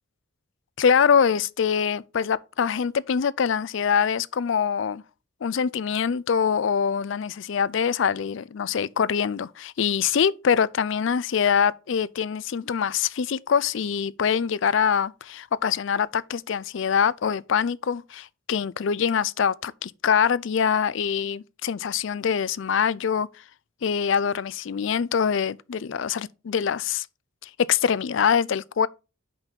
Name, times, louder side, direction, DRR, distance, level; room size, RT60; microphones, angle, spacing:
voice 1, 0.8-5.0 5.4-23.3 23.8-27.1 27.4-28.9, left 7 dB, 60° left, 0.4 m, -24 dB
5.6 x 5.4 x 6.1 m
head